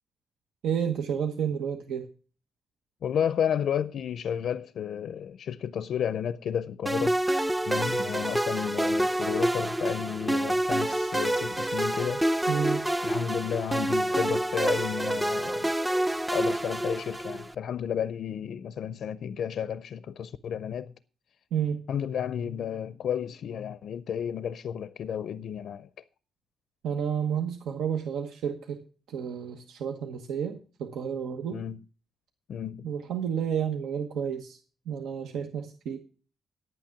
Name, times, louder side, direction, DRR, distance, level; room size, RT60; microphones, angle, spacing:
voice 1, 0.6-2.0 12.5-12.8 21.5-21.8 26.8-28.8 29.1-31.6 32.8-34.6 34.9-36.0, right 8 dB, 90° right, 1.1 m, -30 dB
voice 2, 3.0-7.2 7.7-12.2 13.0-15.7 16.3-20.9 21.9-25.9 31.5-31.8 32.5-32.9, left 8 dB, 70° left, 0.4 m, -32 dB
sound 1, 6.9-17.5, right 1 dB, 10° right, 0.5 m, -27 dB
10.5 x 8.9 x 5.8 m
cardioid pair, 105°, 0 cm